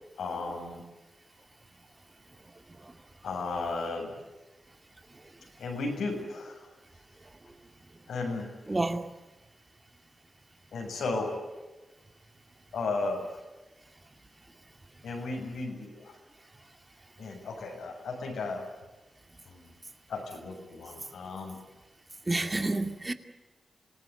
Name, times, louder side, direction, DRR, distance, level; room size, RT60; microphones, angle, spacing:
voice 1, 0.2-0.8 3.2-4.2 5.6-6.7 8.1-8.5 10.7-11.4 12.7-13.4 15.0-16.2 17.2-18.7 19.4-19.8 20.1-21.6, left 3 dB, 90° left, 7.1 m, -34 dB
voice 2, 8.7-9.1 22.3-23.1, right 2 dB, 25° right, 2.2 m, -31 dB
27.0 x 18.0 x 9.6 m
cardioid pair, 70°, 0 cm